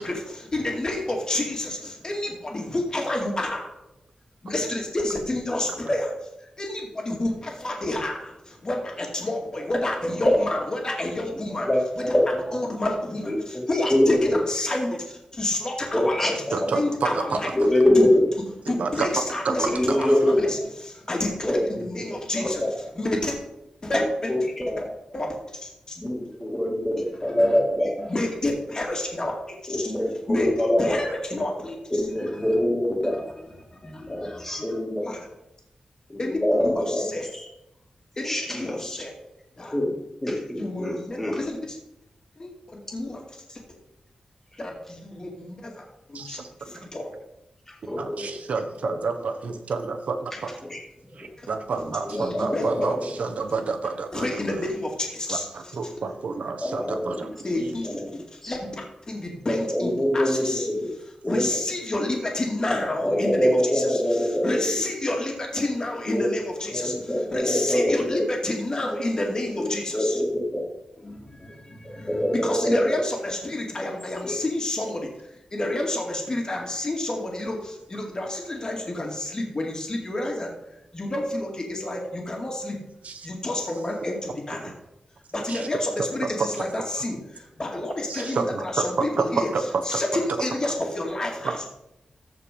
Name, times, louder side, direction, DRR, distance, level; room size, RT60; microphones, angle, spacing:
voice 1, 0.0-3.7 4.4-6.1 6.4-11.7 11.9-12.1 12.5-16.4 16.7-17.5 17.9-18.1 18.7-23.4 23.8-24.3 25.1-25.4 25.6-26.0 27.2-27.6 28.0-29.9 30.3-30.5 30.8-32.6 33.0-35.2 36.2-37.3 38.2-39.1 39.6-39.8 40.6-41.8 42.4-43.2 43.5-43.6 44.6-47.2 51.4-51.5 51.8-52.9 54.1-55.5 57.4-58.0 58.3-60.7 61.0-70.2 71.0-80.5 80.9-82.8 83.2-84.7 85.3-89.5 89.9-91.7, left 1 dB, 35° left, 1 dB, 2.2 m, -30 dB
voice 2, 11.6-12.6 13.3-14.4 15.9-16.6 17.5-18.2 19.6-20.4 21.4-21.6 22.4-22.7 23.9-24.0 24.3-24.9 26.0-28.1 29.7-31.0 31.9-33.2 34.1-35.2 36.1-37.5 38.2-39.0 39.7-39.9 40.2-41.4 47.8-48.3 50.7-50.8 52.1-53.0 56.6-57.1 57.7-58.1 58.4-58.6 59.7-60.9 61.2-61.5 63.0-64.8 66.1-66.3 66.7-68.2 69.6-70.7 72.1-73.0 74.2-74.4, left 1 dB, 15° left, -1 dB, 2.3 m, -24 dB
voice 3, 16.5-17.5 18.7-19.1 19.4-20.2 46.1-46.9 47.9-50.5 51.2-54.6 55.3-57.3 66.1-66.2 83.0-83.3 85.5-85.7 86.4-86.5 88.1-88.8 89.2-90.0 90.3-90.4 90.6-90.7 91.4-91.7, right 4 dB, 85° right, 6 dB, 1.2 m, -29 dB
14.0 x 4.8 x 5.3 m, 0.86 s
wide cardioid pair, 125°, 2 cm